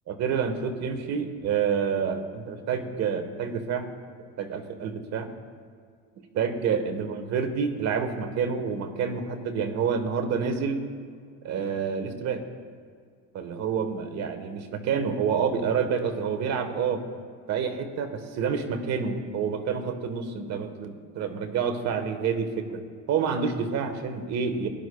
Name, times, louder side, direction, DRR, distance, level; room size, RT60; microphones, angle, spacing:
voice 1, 0.1-3.9 4.4-5.3 6.3-10.8 11.4-12.4 13.3-17.0 17.5-22.8 23.1-24.7, right 6 dB, 60° right, 8 dB, 1.3 m, -28 dB
19.5 x 11.0 x 2.3 m, 2.1 s
cardioid pair, 110°, 30 cm